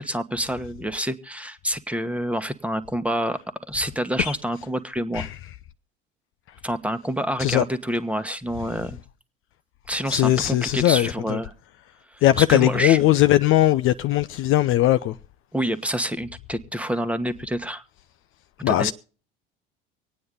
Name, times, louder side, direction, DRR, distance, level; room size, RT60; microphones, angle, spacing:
voice 1, 0.0-3.4 3.7-5.3 6.6-9.0 9.9-11.5 12.1-13.0 15.5-17.8 18.7-18.9, equal, 5° right, 1.2 m, -27 dB
voice 2, 10.1-11.4 12.2-15.1 18.6-18.9, left 14 dB, 45° left, 0.6 m, -19 dB
25.0 x 9.3 x 3.7 m
figure-of-eight pair, 65°, 29 cm